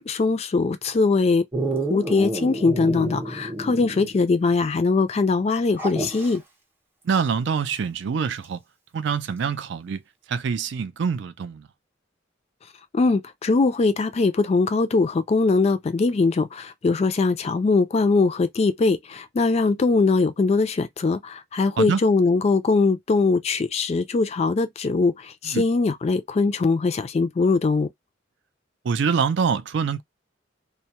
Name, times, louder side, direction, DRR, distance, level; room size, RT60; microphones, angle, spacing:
voice 1, 0.0-1.4 1.9-6.4 12.9-27.9, left 3 dB, 35° left, 0.3 m, -21 dB
Dog, 1.5-4.3 4.6-4.7 5.8-6.4 8.4-8.5, right 1 dB, 10° right, 0.7 m, -29 dB
voice 2, 7.0-8.6 8.9-10.0 10.3-11.7 21.8-22.0 25.4-25.6 28.8-30.0, right 6 dB, 65° right, 0.4 m, -25 dB
2.2 x 2.0 x 2.8 m
head